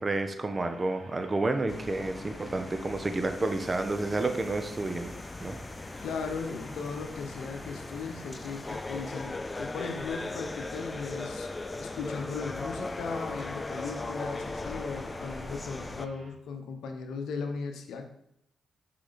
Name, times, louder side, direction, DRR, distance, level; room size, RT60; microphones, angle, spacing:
voice 1, 0.0-5.1 5.4-5.6 8.7-8.8, right 2 dB, 35° right, 7 dB, 1.0 m, -30 dB
sound 1, 0.5-16.3, right 2 dB, 65° right, 2.3 m, -54 dB
sound 2, 1.7-16.1, left 2 dB, 30° left, 0.4 m, -39 dB
voice 2, 6.0-11.5 11.8-18.0, left 5 dB, 80° left, 5 dB, 0.9 m, -37 dB
6.3 x 4.9 x 4.1 m, 0.77 s
supercardioid pair, 50°, 0 cm